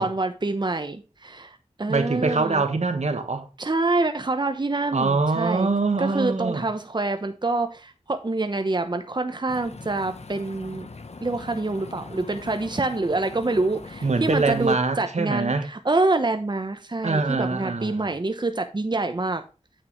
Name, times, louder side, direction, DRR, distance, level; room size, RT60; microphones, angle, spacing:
voice 1, 0.0-2.6 3.6-5.7 6.0-10.9 11.2-19.4, right 2 dB, 40° right, 0.9 m, -26 dB
voice 2, 1.9-3.5 4.9-6.6 14.0-15.7 17.0-18.1, right 3 dB, 75° right, 1.5 m, -24 dB
sound 1, 9.5-14.7, left 3 dB, 65° left, 1.1 m, -41 dB
8.9 x 6.7 x 3.1 m
wide cardioid pair, 45°, 12 cm